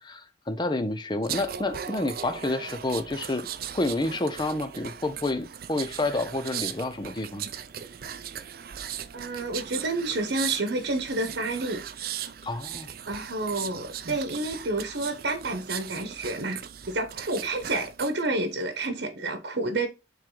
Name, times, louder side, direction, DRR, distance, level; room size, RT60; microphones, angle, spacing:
voice 1, 0.0-3.5 3.7-7.5 12.4-12.9, left 2 dB, 25° left, 0.6 m, -29 dB
sound 1, 1.2-18.2 18.6-18.9, right 9 dB, 55° right, 0.5 m, -38 dB
voice 2, 9.1-11.8 13.1-16.6 16.9-19.9, right 2 dB, 85° right, 1.1 m, -29 dB
7.5 x 3.3 x 3.8 m
head